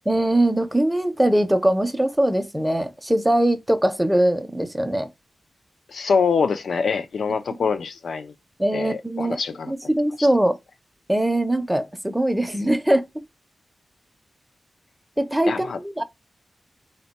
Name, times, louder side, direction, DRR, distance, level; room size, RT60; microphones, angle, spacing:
voice 1, 0.1-5.1 8.6-9.4 9.7-10.6 11.1-13.1 15.2-16.0, right 1 dB, 10° right, 0.5 m, -21 dB
voice 2, 5.9-8.3 8.7-9.7 10.2-10.3 15.5-15.8, left 5 dB, 80° left, 0.4 m, -24 dB
3.5 x 2.2 x 4.0 m
cardioid pair, 60°, 0 cm